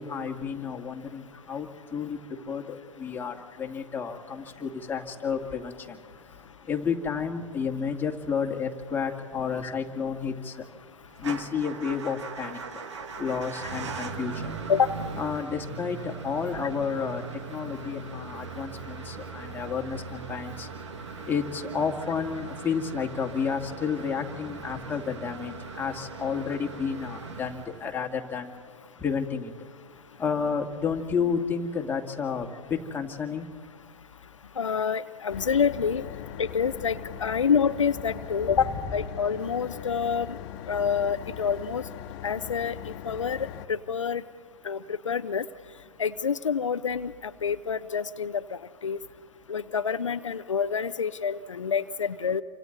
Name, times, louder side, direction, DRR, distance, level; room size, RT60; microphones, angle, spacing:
voice 1, 0.0-6.0 6.6-10.7 11.2-12.8 13.2-14.6 15.2-20.7 21.2-28.5 29.0-29.5 30.2-33.5, left 6 dB, 15° left, 1 dB, 2.3 m, -31 dB
Motor vehicle (road) / Engine starting / Idling, 11.2-28.1, right 5 dB, 70° right, 2.0 m, -39 dB
voice 2, 34.6-36.0 36.4-40.4 40.7-41.8 42.2-44.2 44.6-45.4 46.0-49.0 49.5-52.4, left 6 dB, 85° left, 11 dB, 0.7 m, -27 dB
sound 1, 35.3-43.7, left 10 dB, 45° left, 1.5 m, -40 dB
28.5 x 26.0 x 4.1 m, 2.1 s
hypercardioid pair, 110°, 16 cm